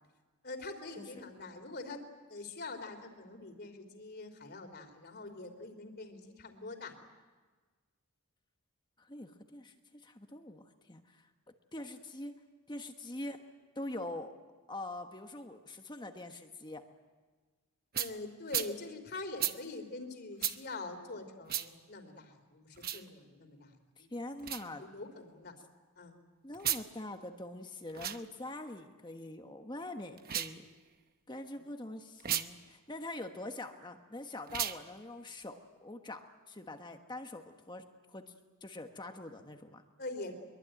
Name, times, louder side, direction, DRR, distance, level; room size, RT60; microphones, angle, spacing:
voice 1, 0.4-2.0 2.3-7.0 17.9-24.1 24.8-25.5 26.0-26.2 31.5-31.6 40.0-40.3, left 2 dB, 45° left, 7 dB, 3.2 m, -44 dB
voice 2, 9.0-11.3 11.7-12.3 12.7-13.4 13.7-14.3 14.7-16.8 24.0-24.8 26.4-30.6 31.3-35.5 35.8-37.8 38.1-38.2 38.6-39.8, left 2 dB, 20° left, 5 dB, 1.3 m, -44 dB
sound 1, 17.9-18.1 18.5-18.7 19.4-19.6 20.4-20.6 21.5-21.7 22.7-23.0 24.4-24.6 26.5-26.8 27.9-28.2 30.2-30.6 32.2-32.5 34.5-34.8, right 11 dB, 45° right, 0.9 m, -34 dB
23.0 x 23.0 x 9.1 m, 1.4 s
head